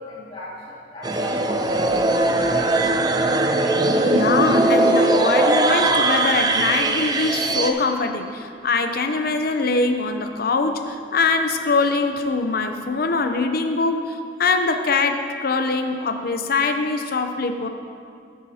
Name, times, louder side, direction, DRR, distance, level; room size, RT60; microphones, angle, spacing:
voice 1, 0.0-2.8, left 2 dB, 30° left, -7 dB, 2.5 m, -38 dB
sound 1, 1.0-7.7, right 2 dB, 20° right, 0.5 m, -19 dB
voice 2, 4.1-17.7, left 3 dB, 55° left, 6 dB, 0.6 m, -23 dB
13.5 x 9.4 x 2.8 m, 2.3 s
head